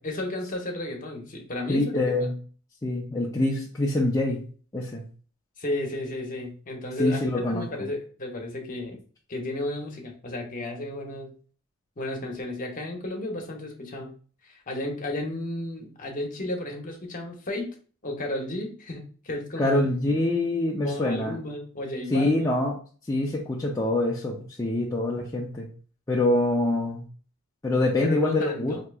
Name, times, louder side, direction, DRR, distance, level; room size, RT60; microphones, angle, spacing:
voice 1, 0.0-1.9 5.6-8.9 9.3-11.3 12.0-14.1 14.4-17.7 18.0-19.8 20.8-22.5 28.0-28.8, left 1 dB, 40° left, 1 dB, 0.9 m, -33 dB
voice 2, 1.7-2.4 2.8-4.4 4.7-5.0 7.0-7.6 19.6-21.4 22.1-22.7 23.1-25.7 26.1-27.0 27.6-28.7, left 2 dB, 15° left, -3 dB, 0.4 m, -25 dB
4.4 x 2.8 x 2.3 m, 0.41 s
head